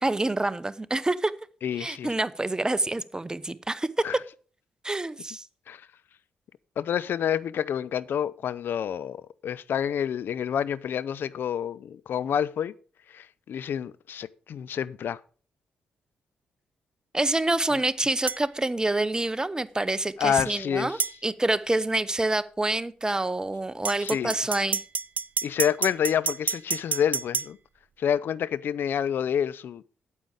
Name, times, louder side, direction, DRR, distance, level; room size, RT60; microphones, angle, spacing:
voice 1, 0.0-1.3 1.8-3.9 4.8-5.5 17.1-24.8, right 2 dB, 20° right, 0.8 m, -27 dB
voice 2, 1.6-2.1 4.0-4.1 5.7-5.8 6.8-12.7 13.1-15.2 17.7-17.8 20.2-21.0 24.0-24.3 25.4-27.6 28.0-29.8, left 9 dB, 60° left, 0.5 m, -28 dB
sound 1, 18.3-18.4 21.0-21.2 23.8-27.5, right 5 dB, 40° right, 0.4 m, -29 dB
8.9 x 8.6 x 4.9 m
hypercardioid pair, 40°, 4 cm